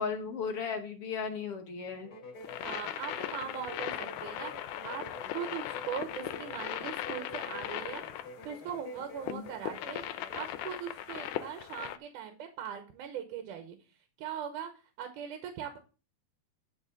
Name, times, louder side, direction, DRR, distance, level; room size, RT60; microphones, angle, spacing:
voice 1, 0.0-2.1 9.3-9.4, left 5 dB, 60° left, 5 dB, 1.7 m, -35 dB
sound 1, 2.0-10.6, left 2 dB, 35° left, 2.9 m, -48 dB
sound 2, 2.4-12.0, left 12 dB, 85° left, 2.2 m, -39 dB
voice 2, 2.6-5.0 5.3-8.0 8.5-10.0 10.3-13.8 14.2-14.7 15.0-15.8, right 9 dB, 90° right, 7 dB, 2.6 m, -40 dB
12.5 x 4.2 x 6.2 m, 0.34 s
omnidirectional pair, 3.5 m